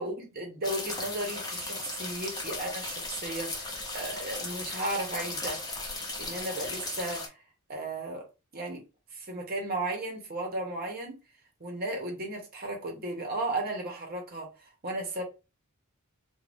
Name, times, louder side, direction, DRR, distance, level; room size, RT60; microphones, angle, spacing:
voice 1, 0.0-5.6 6.2-7.4 7.7-8.3 8.5-8.8 9.1-11.2 11.6-14.5 14.8-15.2, right 2 dB, 45° right, 1.0 m, -35 dB
sound 1, 0.6-7.3, left 2 dB, 20° left, 0.7 m, -36 dB
2.7 x 2.3 x 3.3 m
head